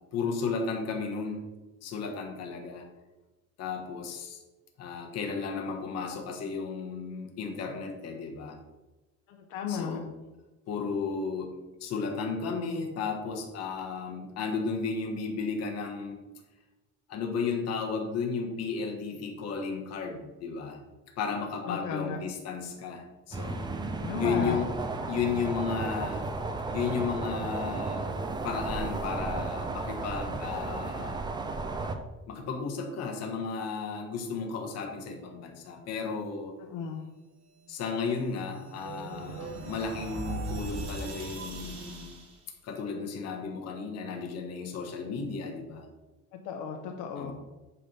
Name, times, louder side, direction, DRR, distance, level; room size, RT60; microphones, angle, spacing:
voice 1, 0.1-1.4 1.8-2.9 3.6-4.4 4.8-8.6 9.7-10.1 10.7-16.2 17.1-20.8 21.1-23.7 24.2-24.7 25.1-26.3 26.7-28.1 28.4-31.2 32.3-36.5 37.7-42.2 42.6-45.8 47.2-47.3, left 5 dB, 55° left, 2 dB, 1.3 m, -34 dB
voice 2, 9.3-10.0 21.7-22.2 24.0-24.6 36.6-37.0 46.4-47.3, left 6 dB, 90° left, 3 dB, 0.9 m, -34 dB
sound 1, 23.3-31.9, right 3 dB, 15° right, 0.4 m, -34 dB
sound 2, 37.9-42.4, right 3 dB, 55° right, 2.4 m, -39 dB
8.5 x 3.5 x 5.5 m, 1.1 s
cardioid pair, 165°, 30 cm